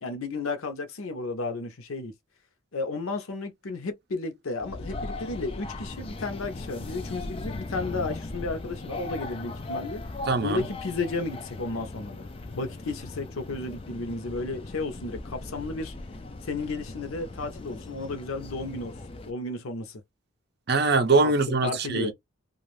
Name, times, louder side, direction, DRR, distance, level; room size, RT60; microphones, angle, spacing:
voice 1, 0.0-2.1 2.7-10.0 10.4-12.3 12.5-15.9 16.4-18.9 19.3-20.0 21.2-21.3 21.6-22.1, left 3 dB, 85° left, 0.7 m, -33 dB
sound 1, 4.6-19.3, left 2 dB, 25° left, 0.3 m, -38 dB
voice 2, 10.3-10.6 20.7-22.1, right 3 dB, 50° right, 0.6 m, -23 dB
2.5 x 2.4 x 3.1 m
head